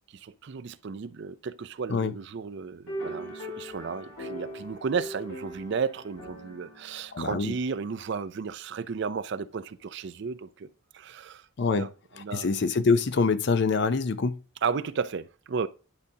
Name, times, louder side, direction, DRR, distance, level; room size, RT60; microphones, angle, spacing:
voice 1, 0.1-10.7 10.9-11.9 12.1-12.5 14.6-15.7, right 5 dB, 55° right, 0.4 m, -33 dB
sound 1, 2.9-8.4, equal, 80° left, 3.3 m, -40 dB
voice 2, 7.1-7.5 11.6-11.9 12.2-14.4, left 4 dB, 55° left, 0.5 m, -25 dB
10.5 x 5.1 x 2.8 m
head